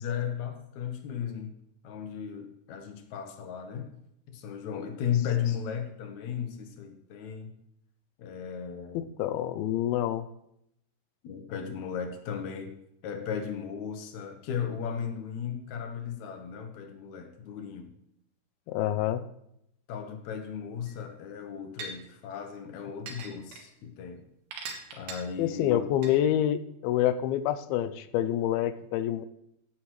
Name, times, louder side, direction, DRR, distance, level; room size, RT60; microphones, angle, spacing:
voice 1, 0.0-1.5 1.8-3.9 4.3-7.5 8.2-9.1 11.2-12.7 13.0-17.9 19.9-24.2 24.9-25.8, left 8 dB, 65° left, 5 dB, 2.0 m, -35 dB
voice 2, 8.9-10.3 18.7-19.2 25.4-29.3, left 11 dB, 80° left, 13 dB, 2.3 m, -27 dB
sound 1, 20.9-21.0 21.8-21.9 23.1-23.6 24.5-25.2 26.0-26.1, right 4 dB, 75° right, 3.4 m, -39 dB
15.0 x 8.5 x 3.1 m, 0.76 s
omnidirectional pair, 4.6 m